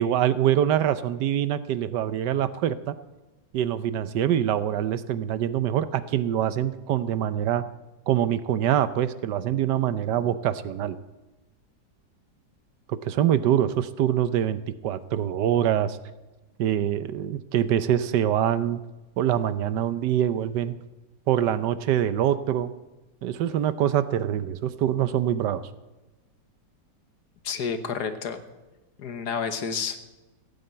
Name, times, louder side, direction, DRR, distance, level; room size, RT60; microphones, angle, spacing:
voice 1, 0.0-2.9 3.5-7.6 8.1-11.0 12.9-16.0 16.6-18.8 19.2-20.7 21.3-22.7 23.2-25.6, right 10 dB, 75° right, 14 dB, 1.3 m, -24 dB
voice 2, 27.4-28.4 29.0-30.0, left 6 dB, 65° left, 10 dB, 1.6 m, -30 dB
16.0 x 9.4 x 8.0 m, 1.1 s
omnidirectional pair, 1.9 m